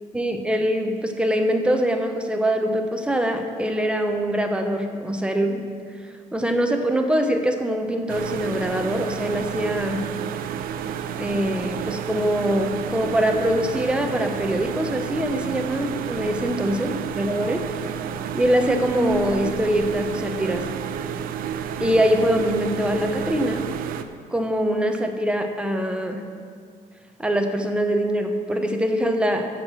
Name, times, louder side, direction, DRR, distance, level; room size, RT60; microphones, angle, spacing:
voice 1, 0.1-5.6 6.3-10.1 11.2-17.6 18.3-20.7 21.8-23.7 24.3-26.3 27.2-29.5, equal, 5° right, 5 dB, 0.7 m, -23 dB
sound 1, 8.1-24.0, right 8 dB, 80° right, 0.6 m, -31 dB
13.5 x 4.9 x 7.5 m, 2.1 s
cardioid pair, 165°, 15 cm